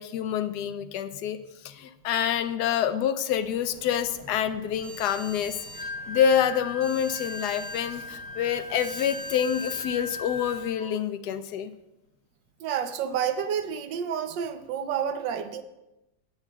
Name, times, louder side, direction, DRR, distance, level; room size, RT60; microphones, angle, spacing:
voice 1, 0.0-1.4 1.6-5.6 6.1-11.7, left 9 dB, 75° left, 1.1 m, -27 dB
sound 1, 3.3-10.6, equal, 20° right, 2.8 m, -45 dB
Wind instrument woodwind instrument, 5.6-10.9, left 3 dB, 15° left, 1.1 m, -38 dB
voice 2, 12.6-15.6, right 8 dB, 75° right, 1.3 m, -29 dB
19.5 x 8.0 x 2.3 m
omnidirectional pair, 2.0 m